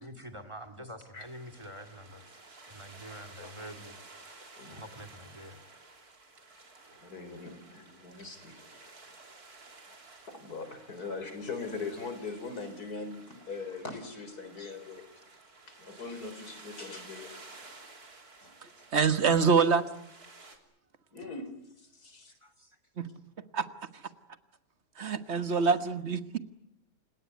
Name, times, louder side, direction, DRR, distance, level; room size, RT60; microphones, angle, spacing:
voice 1, 0.0-2.4 2.7-4.0 4.7-5.6 8.9-9.0 10.6-10.8 14.0-14.1 15.9-16.0 18.4-18.5 18.8-18.9 22.4-22.8, equal, 20° right, 2.5 m, -47 dB
sound 1, 1.1-20.6, right 3 dB, 80° right, 3.7 m, -53 dB
voice 2, 7.0-8.6 9.9-10.0 10.3-15.0 15.8-17.4 18.4-18.5 21.1-21.5 22.1-22.2 25.0-25.1 25.3-25.8, left 4 dB, 90° left, 4.2 m, -41 dB
voice 3, 18.9-19.8 23.0-23.1 23.5-23.7 25.0-26.4, right 5 dB, 45° right, 1.6 m, -25 dB
28.5 x 17.5 x 9.4 m
omnidirectional pair, 1.6 m